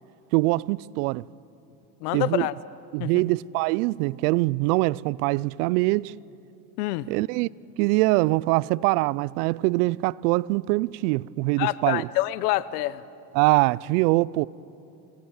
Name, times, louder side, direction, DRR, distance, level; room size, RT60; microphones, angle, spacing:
voice 1, 0.3-1.2 2.1-2.5 2.9-6.1 7.1-7.5 7.8-12.1 13.3-14.5, right 21 dB, 80° right, 0.6 m, -23 dB
voice 2, 2.0-2.5 3.0-3.2 6.8-7.1 11.6-13.0, left 16 dB, 85° left, 0.9 m, -26 dB
28.5 x 18.0 x 7.2 m
supercardioid pair, 110°, 45 cm